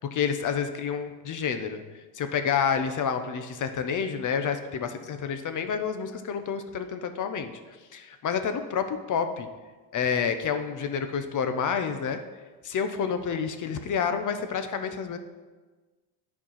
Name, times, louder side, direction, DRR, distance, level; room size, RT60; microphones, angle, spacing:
voice 1, 0.1-1.8 2.1-7.5 7.9-9.5 9.9-12.2 12.6-15.2, left 7 dB, 40° left, 8 dB, 0.9 m, -29 dB
10.0 x 4.8 x 5.6 m, 1.3 s
supercardioid pair, 100°, 49 cm